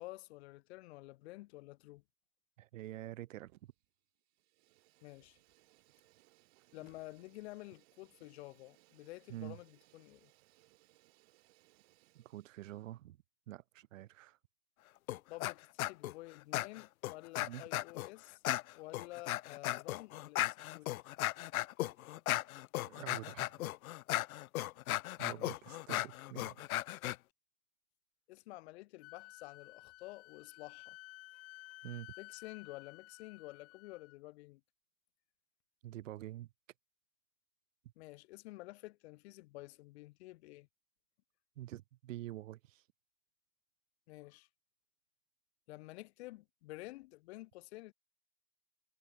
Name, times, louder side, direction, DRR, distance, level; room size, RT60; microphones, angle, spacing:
voice 1, 0.0-2.0 5.0-5.4 6.7-10.3 15.3-18.4 18.7-20.9 25.2-25.6 28.3-31.0 32.2-34.6 38.0-40.7 44.1-44.5 45.7-47.9, left 20 dB, 50° left, 2.5 m, -50 dB
voice 2, 2.6-3.5 9.3-9.6 12.1-13.2 13.5-14.4 17.4-17.6 22.8-23.5 25.2-26.6 31.8-32.1 35.8-36.5 41.6-42.8, right 14 dB, 65° right, 3.3 m, -47 dB
Fire, 3.4-3.9 4.2-12.9, right 23 dB, 50° right, 6.9 m, -69 dB
sound 1, 15.1-15.5 15.8-16.1 16.5-18.1 18.4-27.2, left 16 dB, 85° left, 0.5 m, -36 dB
Wind instrument woodwind instrument, 29.0-34.2, left 21 dB, 35° left, 6.1 m, -54 dB
hypercardioid pair, 145°, 42 cm